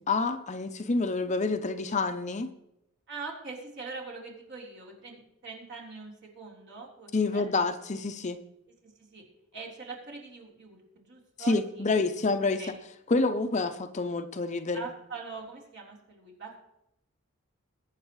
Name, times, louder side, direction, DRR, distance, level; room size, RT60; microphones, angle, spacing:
voice 1, 0.0-2.5 7.1-8.4 11.5-12.8 13.1-14.9, left 3 dB, 35° left, 9 dB, 0.6 m, -28 dB
voice 2, 3.1-7.5 8.8-9.2 9.5-11.9 12.6-12.7 14.7-16.6, right 4 dB, 55° right, -2 dB, 3.8 m, -43 dB
22.5 x 8.9 x 3.1 m, 0.86 s
head